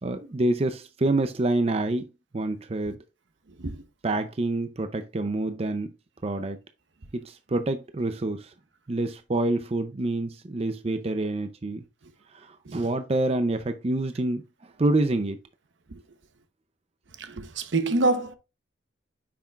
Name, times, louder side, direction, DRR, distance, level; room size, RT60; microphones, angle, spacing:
voice 1, 0.0-2.1 2.3-3.0 4.0-5.9 6.2-6.6 7.1-8.5 8.9-11.8 12.3-15.4, right 2 dB, 35° right, 0.5 m, -27 dB
voice 2, 3.5-3.8 12.0-12.1 12.6-12.9 15.9-16.0 17.2-18.3, right 2 dB, 75° right, 0.9 m, -27 dB
8.3 x 6.0 x 2.4 m
head